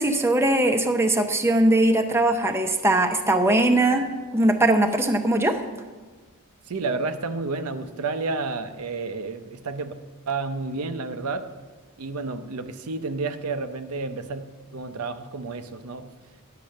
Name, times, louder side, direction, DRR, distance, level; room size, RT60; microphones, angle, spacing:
voice 1, 0.0-4.1 4.3-5.6, right 1 dB, 10° right, 5 dB, 0.7 m, -20 dB
voice 2, 6.7-9.9 10.3-11.5 12.0-14.4 14.7-16.1, right 3 dB, 70° right, 8 dB, 0.6 m, -30 dB
10.0 x 6.8 x 6.4 m, 1.3 s
head